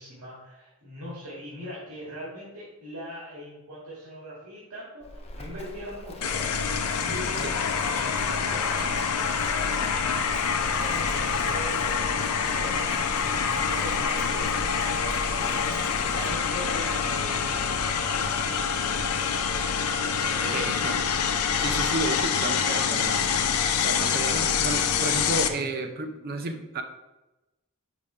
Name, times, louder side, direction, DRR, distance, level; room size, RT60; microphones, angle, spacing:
voice 1, 0.0-6.5 6.9-10.1 10.5-19.8 20.2-20.7 22.9-23.5 25.4-26.0, equal, 90° right, -7 dB, 1.8 m, -41 dB
Livestock farm animals working animals, 5.0-16.3, left 1 dB, 30° left, 0.4 m, -41 dB
sound 1, 6.2-25.5, left 6 dB, 90° left, 0.5 m, -26 dB
voice 2, 20.5-21.0 21.6-23.3 23.8-26.8, right 2 dB, 45° right, 6 dB, 0.6 m, -32 dB
5.1 x 3.5 x 5.4 m, 1.0 s
head